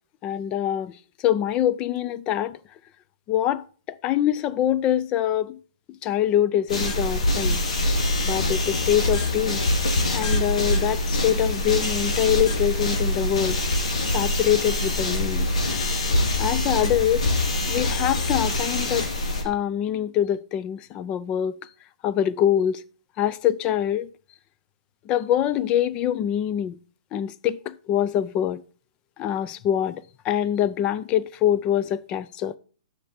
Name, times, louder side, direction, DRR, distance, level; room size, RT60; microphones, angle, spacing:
voice 1, 0.2-1.0 1.2-2.6 3.3-3.6 4.0-5.6 6.0-7.6 8.2-9.7 10.1-13.6 14.1-15.5 16.4-17.3 17.7-19.1 19.4-21.6 22.0-22.8 23.2-24.1 25.1-26.8 27.1-28.6 29.2-32.6, left 10 dB, 30° left, 0.6 m, -24 dB
sound 1, 6.7-19.4, left 1 dB, 75° left, 2.7 m, -24 dB
9.6 x 6.7 x 4.3 m
hypercardioid pair, 135°, 3 cm